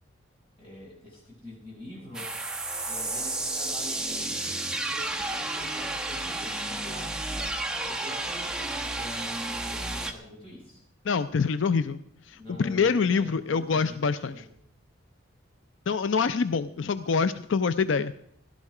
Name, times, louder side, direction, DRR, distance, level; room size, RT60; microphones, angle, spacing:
voice 1, 0.6-2.3 2.9-7.5 7.9-10.8 12.3-14.5, left 1 dB, 30° left, -4 dB, 7.3 m, -45 dB
sound 1, 2.1-10.1, right 2 dB, 5° right, 1.0 m, -32 dB
voice 2, 11.0-12.0 12.3-14.4 15.9-18.1, left 5 dB, 65° left, 13 dB, 0.5 m, -25 dB
17.0 x 12.0 x 4.8 m, 0.68 s
head